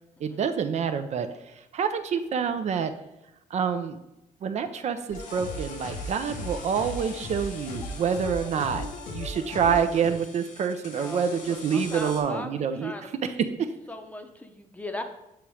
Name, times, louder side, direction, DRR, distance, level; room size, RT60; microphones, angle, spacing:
voice 1, 0.2-2.9 3.5-4.0 4.4-13.4, right 7 dB, 55° right, 9 dB, 0.4 m, -27 dB
sound 1, 5.1-10.1, left 2 dB, 90° left, 0.9 m, -37 dB
sound 2, 5.2-12.2, left 3 dB, 70° left, 1.2 m, -46 dB
voice 2, 10.9-13.3 13.9-15.0, left 1 dB, 10° left, 5 dB, 0.7 m, -39 dB
7.0 x 3.0 x 4.8 m, 0.89 s
cardioid pair, 105°, 14 cm